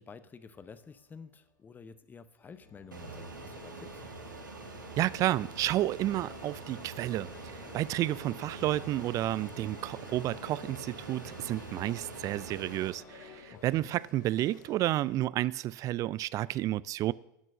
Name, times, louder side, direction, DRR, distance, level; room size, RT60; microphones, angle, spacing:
voice 1, 0.0-4.0 13.5-13.9, left 5 dB, 20° left, 0.7 m, -50 dB
sound 1, 0.5-1.7 2.4-15.0, left 3 dB, 35° left, 2.5 m, -56 dB
Fixed-wing aircraft airplane, 2.9-12.9, right 3 dB, 85° right, 1.4 m, -45 dB
voice 2, 5.0-17.1, right 15 dB, 35° right, 0.3 m, -31 dB
sound 2, 6.0-15.2, left 8 dB, 75° left, 0.9 m, -55 dB
11.0 x 6.2 x 6.5 m
figure-of-eight pair, 85°, 10 cm